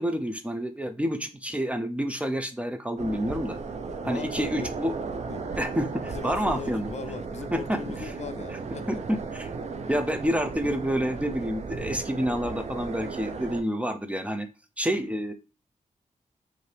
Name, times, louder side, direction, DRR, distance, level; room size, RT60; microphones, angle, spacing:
voice 1, 0.0-3.6 4.0-4.9 5.6-6.9 7.5-7.8 8.9-9.5 9.9-14.5 14.8-15.3, equal, 10° right, 0.5 m, -28 dB
sound 1, 3.0-13.6, right 4 dB, 60° right, 0.5 m, -35 dB
voice 2, 4.0-4.7 5.3-5.5 5.7-8.9, left 6 dB, 60° left, 0.4 m, -39 dB
5.4 x 2.6 x 3.3 m
wide cardioid pair, 125°, 13 cm